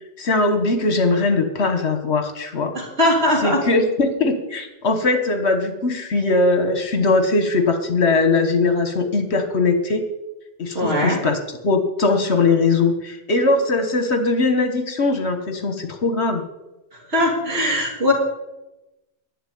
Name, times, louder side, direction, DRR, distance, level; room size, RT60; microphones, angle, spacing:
voice 1, 0.2-2.7 3.4-10.0 10.6-11.4 11.6-16.4, left 3 dB, 70° left, 7 dB, 1.6 m, -20 dB
voice 2, 2.7-3.6 10.7-11.2 17.1-18.1, left 1 dB, 60° right, -1 dB, 3.3 m, -20 dB
11.0 x 7.7 x 9.3 m, 1.0 s
omnidirectional pair, 1.2 m